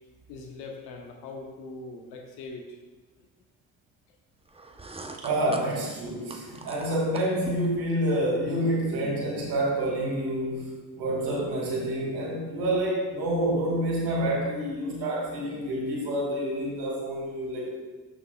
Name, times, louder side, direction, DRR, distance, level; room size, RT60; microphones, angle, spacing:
voice 1, 0.3-2.8, left 3 dB, 90° left, 2 dB, 1.0 m, -41 dB
sound 1, 4.5-7.8, right 2 dB, 15° right, 0.8 m, -42 dB
voice 2, 5.2-17.7, right 1 dB, 75° right, -2 dB, 2.4 m, -28 dB
12.0 x 6.1 x 2.3 m, 1.3 s
supercardioid pair, 60°, 40 cm